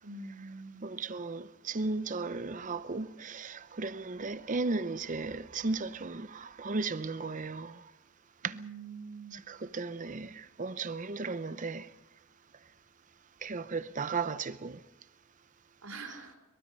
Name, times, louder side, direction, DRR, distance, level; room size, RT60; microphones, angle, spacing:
voice 1, 0.0-0.9 8.4-9.4 15.8-16.4, right 3 dB, 80° right, 5.1 m, -44 dB
voice 2, 0.8-7.9 8.4-8.6 9.3-11.9 13.4-14.8, right 3 dB, 35° right, 0.7 m, -35 dB
23.5 x 22.5 x 5.5 m
head